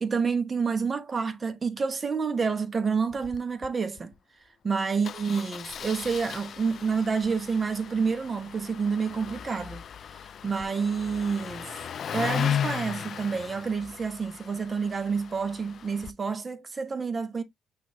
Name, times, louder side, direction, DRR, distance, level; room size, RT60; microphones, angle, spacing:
voice 1, 0.0-4.1 4.6-9.8 10.4-11.7 12.1-17.4, right 5 dB, 35° right, 0.9 m, -28 dB
Engine starting, 3.1-3.4 3.6-3.7 4.0-4.1 5.0-16.1, left 8 dB, 60° left, 0.3 m, -36 dB
5.9 x 3.0 x 2.7 m
cardioid pair, 90°, 0 cm